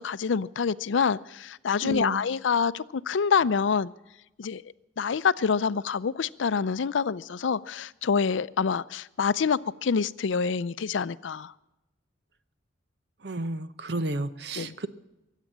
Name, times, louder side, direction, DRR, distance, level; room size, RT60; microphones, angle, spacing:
voice 1, 0.0-3.9 4.4-4.6 5.0-11.5 14.6-14.8, left 6 dB, 85° left, 17 dB, 0.5 m, -26 dB
voice 2, 1.8-2.2 13.2-14.9, right 2 dB, 60° right, 13 dB, 0.8 m, -32 dB
23.0 x 8.3 x 7.4 m, 0.94 s
head